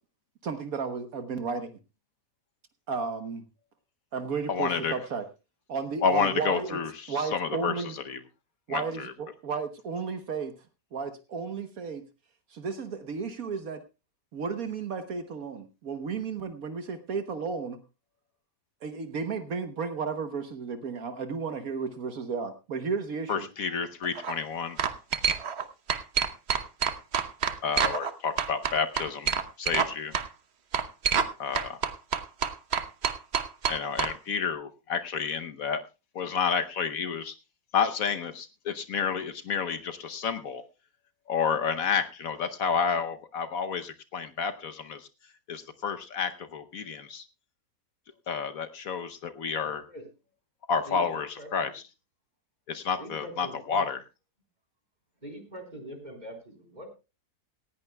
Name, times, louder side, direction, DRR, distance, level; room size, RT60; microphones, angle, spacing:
voice 1, 0.4-1.8 2.9-3.4 4.1-5.3 5.7-6.8 7.1-7.9 8.7-10.7 10.9-12.1 12.5-13.8 14.3-17.8 18.8-23.7, right 5 dB, 65° right, 8 dB, 1.4 m, -33 dB
voice 2, 4.5-5.0 6.0-7.7 8.1-8.2 8.7-9.1 23.3-24.8 27.6-30.1 31.4-31.8 33.7-35.8 36.1-37.3 37.7-40.6 41.3-45.1 45.5-47.2 48.3-49.8 50.7-51.8 52.7-54.0, left 6 dB, 65° left, 9 dB, 1.2 m, -30 dB
sound 1, 24.0-24.3 24.8-25.6 25.9-28.1 28.4-29.9 30.1-30.3 30.7-31.3 31.5-34.1, right 6 dB, 50° right, 1.1 m, -27 dB
voice 3, 49.6-50.0 50.9-51.1 51.4-51.7 53.0-53.8 55.2-56.9, equal, 25° right, 3 dB, 4.0 m, -43 dB
18.5 x 15.5 x 2.2 m, 0.28 s
omnidirectional pair, 1.7 m